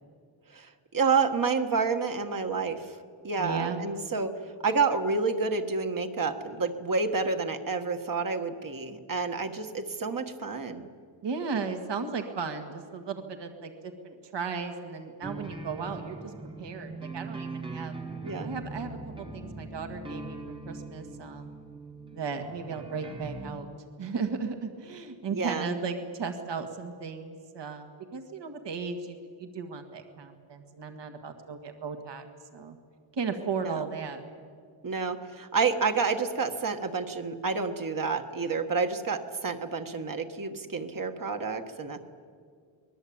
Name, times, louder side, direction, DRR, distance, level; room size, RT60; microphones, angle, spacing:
voice 1, 0.5-2.9 3.2-4.3 4.6-10.9 18.2-18.5 25.3-25.7 33.6-33.8 34.8-42.0, right 4 dB, 45° right, 6 dB, 1.5 m, -29 dB
voice 2, 3.4-3.9 11.2-16.3 16.6-17.9 18.4-21.5 22.1-23.7 24.0-32.3 32.5-32.8 33.1-34.2, right 5 dB, 65° right, 6 dB, 1.9 m, -35 dB
sound 1, 15.2-23.5, right 3 dB, 10° right, 1.2 m, -41 dB
24.0 x 20.0 x 8.7 m, 2.1 s
wide cardioid pair, 165°, 46 cm